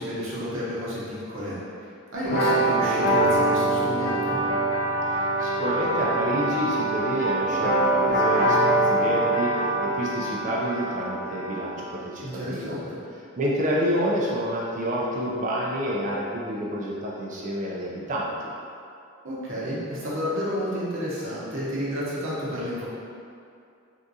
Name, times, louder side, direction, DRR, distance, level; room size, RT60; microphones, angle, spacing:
voice 1, 0.0-1.9 2.1-4.4 12.2-13.0 19.2-22.8, equal, 60° right, -8 dB, 0.8 m, -31 dB
sound 1, 2.2-11.8, right 1 dB, 45° left, 0.5 m, -24 dB
voice 2, 5.1-12.8 13.4-18.3, equal, 35° right, -4 dB, 0.4 m, -29 dB
3.5 x 2.4 x 2.7 m, 2.5 s
head